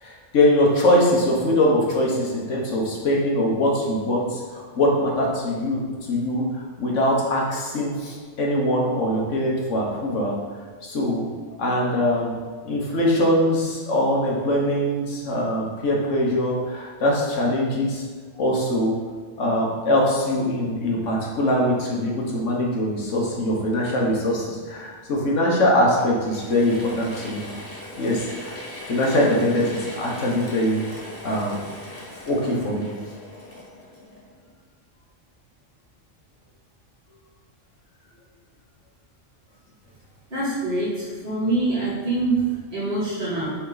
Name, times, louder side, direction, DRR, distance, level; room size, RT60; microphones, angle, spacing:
voice 1, 0.0-5.8 6.1-10.4 10.8-11.2 11.6-12.4 12.6-18.0 18.4-19.0 19.4-27.5 28.0-28.5 28.9-30.8 31.2-31.6 32.3-32.9, left 1 dB, 85° left, -2 dB, 1.6 m, -22 dB
Mechanisms / Drill, 26.0-34.6, left 1 dB, 10° left, 1.3 m, -39 dB
voice 2, 40.3-43.6, right 2 dB, 60° right, -9 dB, 2.5 m, -25 dB
8.5 x 3.8 x 4.0 m, 1.5 s
omnidirectional pair, 1.2 m